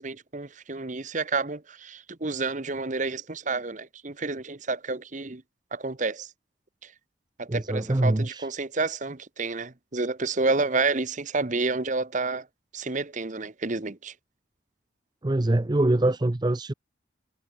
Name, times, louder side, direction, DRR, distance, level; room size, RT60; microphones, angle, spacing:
voice 1, 0.0-5.4 5.7-6.3 6.8-6.9 7.4-12.5 12.7-14.1, right 3 dB, 40° right, 1.1 m, -29 dB
voice 2, 7.5-8.5 15.2-16.7, right 1 dB, 20° right, 0.5 m, -24 dB
head